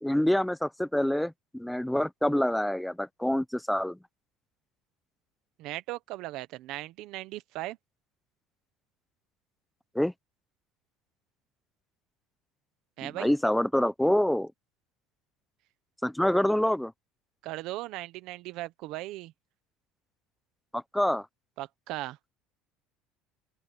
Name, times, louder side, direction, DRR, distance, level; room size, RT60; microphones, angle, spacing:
voice 1, 0.0-4.0 9.9-10.1 13.0-14.5 16.0-16.9 20.7-21.3, left 1 dB, ahead, 0.6 m, -26 dB
voice 2, 5.6-7.8 13.0-13.3 17.4-19.3 21.6-22.2, right 17 dB, 60° right, 1.1 m, -37 dB
open air
cardioid pair, 155°, 0 cm